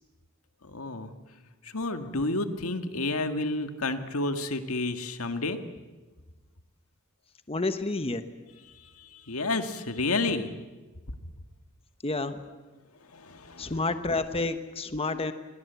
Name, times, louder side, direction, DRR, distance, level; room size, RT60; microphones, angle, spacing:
voice 1, 0.6-1.1 1.6-5.6 8.8-10.5 13.1-13.7, left 2 dB, 85° left, 7 dB, 1.9 m, -30 dB
voice 2, 7.5-8.2 12.0-12.4 13.6-15.3, left 2 dB, 25° left, 9 dB, 1.2 m, -29 dB
29.0 x 22.5 x 8.3 m, 1.3 s
head